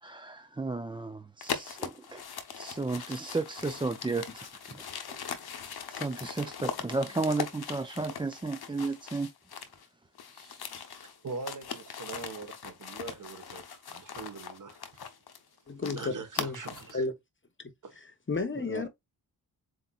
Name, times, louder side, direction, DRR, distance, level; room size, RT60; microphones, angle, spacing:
voice 1, 0.0-2.2 2.5-5.2 5.9-9.3 10.3-10.7 18.7-18.9, right 3 dB, 15° right, 0.3 m, -34 dB
sound 1, 1.4-9.9 10.2-17.0, left 7 dB, 70° left, 0.9 m, -40 dB
voice 2, 11.0-15.1 15.7-17.0 17.8-18.0, right 4 dB, 50° right, 1.3 m, -42 dB
voice 3, 15.7-16.6 16.9-17.1 17.6-17.7 18.3-18.9, left 3 dB, 30° left, 0.9 m, -32 dB
7.7 x 2.8 x 2.4 m
wide cardioid pair, 110°, 40 cm